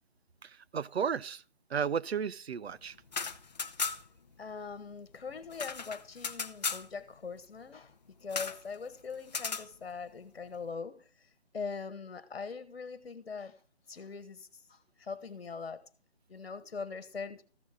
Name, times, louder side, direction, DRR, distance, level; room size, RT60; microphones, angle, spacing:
voice 1, 0.4-1.4 1.7-3.0, right 7 dB, 70° right, 0.6 m, -33 dB
sound 1, 3.0-4.2 4.5-4.6 4.9-6.9 8.3-8.6 9.3-9.7, left 5 dB, 40° left, 0.6 m, -36 dB
voice 2, 4.4-11.1 11.5-13.6 13.9-15.8 16.3-17.4, left 5 dB, 60° left, 1.4 m, -42 dB
14.5 x 6.3 x 3.6 m
figure-of-eight pair, 160°, 33 cm